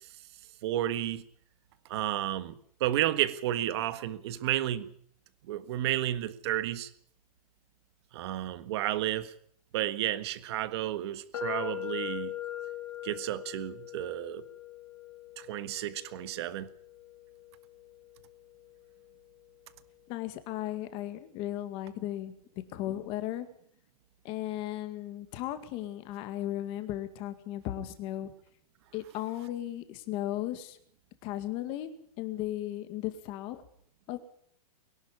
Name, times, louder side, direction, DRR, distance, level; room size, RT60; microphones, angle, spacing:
voice 1, 0.6-1.2 1.9-2.5 2.8-4.9 5.5-6.9 8.1-9.3 9.7-12.3 13.0-14.4 15.4-16.7, right 13 dB, 45° right, 1.6 m, -31 dB
sound 1, 11.3-19.2, left 12 dB, 55° left, 2.8 m, -42 dB
voice 2, 20.1-22.3 22.7-23.5 24.2-28.3 28.9-30.8 31.2-31.9 32.2-33.6 34.1-34.2, left 13 dB, 25° left, 2.0 m, -36 dB
22.5 x 11.5 x 9.9 m
hypercardioid pair, 165°, 20 cm